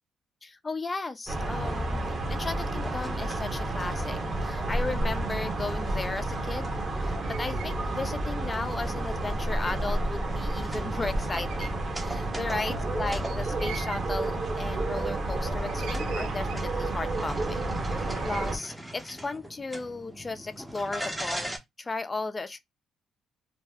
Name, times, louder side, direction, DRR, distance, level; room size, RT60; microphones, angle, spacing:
voice 1, 0.4-6.7 7.0-21.5 21.8-22.6, left 3 dB, 25° left, 0.4 m, -35 dB
sound 1, 1.3-18.6, right 2 dB, 40° right, 1.0 m, -30 dB
sound 2, 4.2-5.3 7.0-7.8 8.1-8.2 8.9-10.0 10.5-10.6 10.8-11.0 11.3-12.2 13.2-14.1 14.9-15.3 15.7-16.9 17.6-18.6, right 9 dB, 90° right, 0.4 m, -45 dB
sound 3, 10.6-21.6, right 1 dB, 5° right, 0.7 m, -43 dB
2.6 x 2.1 x 3.4 m
cardioid pair, 90°, 0 cm